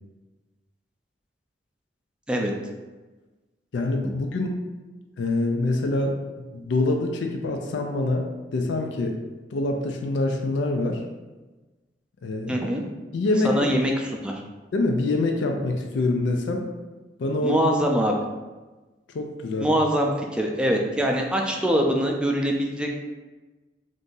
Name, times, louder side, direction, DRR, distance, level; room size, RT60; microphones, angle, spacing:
voice 1, 3.7-4.6 5.2-6.2 6.5-8.3 8.5-9.2 9.5-11.0 12.2-12.6 13.1-13.5 14.7-16.7 17.2-17.7 19.1-19.7, left 2 dB, 85° left, 2 dB, 0.4 m, -25 dB
voice 2, 12.5-12.8 13.4-14.4 17.4-18.1 19.6-22.9, equal, 5° right, 0 dB, 0.3 m, -23 dB
2.6 x 2.5 x 3.7 m, 1.2 s
head